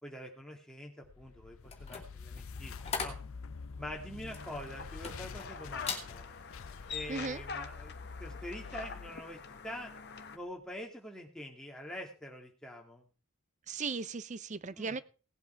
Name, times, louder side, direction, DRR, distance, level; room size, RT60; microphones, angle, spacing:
voice 1, 0.0-3.2 3.8-6.3 6.9-7.9 8.2-9.9 10.3-13.1 14.8-15.0, equal, 5° left, 2.5 m, -45 dB
sound 1, 1.0-10.2, left 5 dB, 65° left, 0.5 m, -47 dB
sound 2, 1.6-5.5 5.8-6.1 6.6-6.8, left 5 dB, 30° left, 2.6 m, -40 dB
sound 3, 4.4-10.4, left 5 dB, 50° left, 1.3 m, -45 dB
voice 2, 7.1-7.4 13.7-15.0, right 4 dB, 35° right, 0.5 m, -37 dB
17.5 x 8.3 x 4.5 m
head